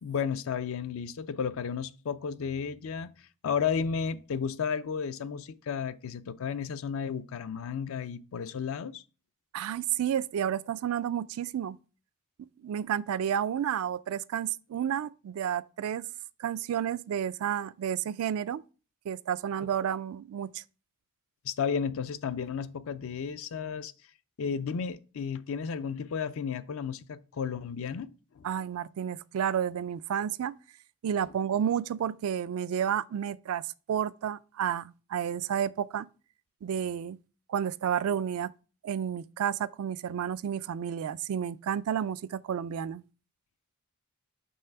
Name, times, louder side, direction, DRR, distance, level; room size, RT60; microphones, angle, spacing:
voice 1, 0.0-3.1 3.4-9.0 21.4-23.9 24.4-28.5, left 6 dB, 65° left, 0.4 m, -33 dB
voice 2, 9.5-11.8 12.6-16.1 16.4-18.6 19.1-20.6 28.4-30.5 31.0-33.6 33.9-36.1 36.6-37.2 37.5-38.5 38.8-43.0, right 9 dB, 75° right, 0.3 m, -31 dB
5.5 x 3.3 x 5.6 m
head